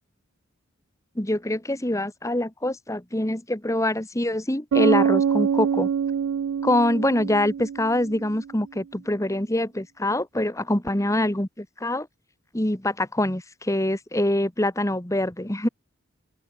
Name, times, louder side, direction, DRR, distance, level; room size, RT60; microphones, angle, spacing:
voice 1, 1.1-5.9 6.6-12.1 12.5-15.7, left 1 dB, 15° left, 1.6 m, -25 dB
Bass guitar, 4.7-8.4, right 7 dB, 80° right, 0.3 m, -24 dB
open air
head